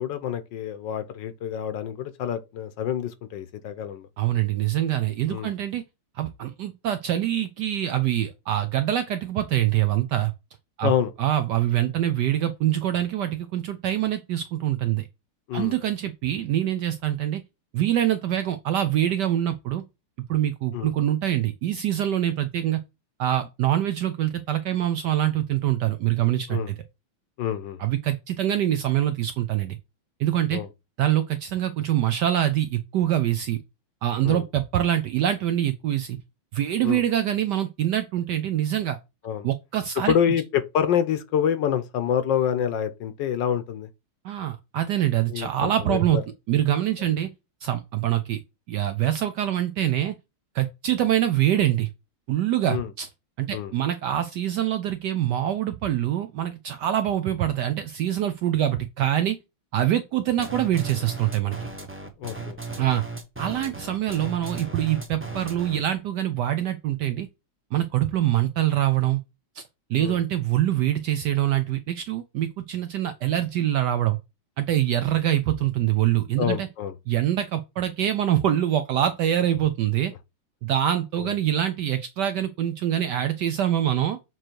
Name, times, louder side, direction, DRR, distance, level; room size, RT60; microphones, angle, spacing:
voice 1, 0.0-4.1 5.3-5.5 10.8-11.1 15.5-15.7 20.7-20.9 26.5-26.7 27.4-27.8 30.5-30.7 34.2-34.4 36.8-37.0 39.2-39.5 40.1-43.9 45.3-46.2 47.0-47.1 52.6-52.9 53.5-53.7 62.2-62.6 70.0-70.2 76.4-76.9 81.2-81.3, left 9 dB, 70° left, 1.3 m, -27 dB
voice 2, 4.2-5.8 6.2-10.3 10.8-10.9 11.2-15.1 15.5-17.4 17.7-19.8 20.3-22.8 23.2-26.8 27.8-29.8 30.2-30.6 31.0-33.6 34.0-36.2 36.5-39.0 39.4-40.1 44.2-46.2 46.5-47.3 47.6-48.4 48.7-50.1 50.5-51.9 52.3-53.1 53.4-59.4 59.7-61.6 62.8-63.0 63.4-67.3 67.7-69.2 69.6-69.7 69.9-74.2 74.6-76.7 77.1-80.1 80.6-84.2, right 12 dB, 75° right, 1.0 m, -24 dB
sound 1, 60.4-65.9, right 3 dB, 15° right, 0.4 m, -36 dB
7.6 x 3.1 x 4.5 m
omnidirectional pair, 2.3 m